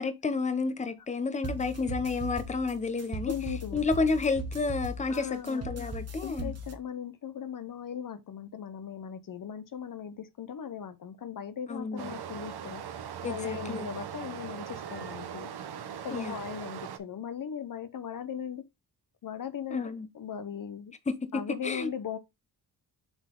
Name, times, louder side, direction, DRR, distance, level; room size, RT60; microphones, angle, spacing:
voice 1, 0.0-3.3 3.7-6.5 11.7-12.2 13.2-13.9 16.1-16.4 19.7-20.1 21.6-21.9, left 4 dB, 20° left, 0.8 m, -31 dB
sound 1, 1.4-6.7, right 2 dB, 40° right, 1.1 m, -38 dB
voice 2, 3.3-3.9 5.1-5.7 6.2-15.5 16.0-18.6 19.2-20.9 21.3-22.2, left 8 dB, 55° left, 0.8 m, -38 dB
Stream, 12.0-17.0, right 8 dB, 70° right, 1.0 m, -40 dB
7.1 x 3.9 x 3.7 m
wide cardioid pair, 120°, 40 cm